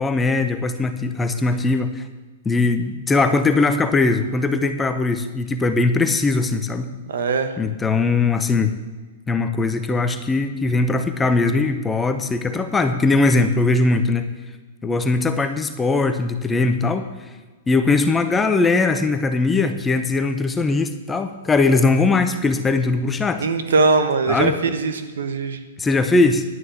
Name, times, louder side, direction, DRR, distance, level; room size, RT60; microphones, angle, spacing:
voice 1, 0.0-2.0 2.4-6.9 7.6-8.7 9.3-14.3 14.8-17.1 17.7-23.4 24.3-24.5 25.8-26.4, left 3 dB, 10° left, 8 dB, 0.8 m, -20 dB
voice 2, 7.1-7.6 23.4-25.6, right 4 dB, 85° right, 9 dB, 1.3 m, -21 dB
11.0 x 6.3 x 8.0 m, 1.3 s
hypercardioid pair, 145°, 0 cm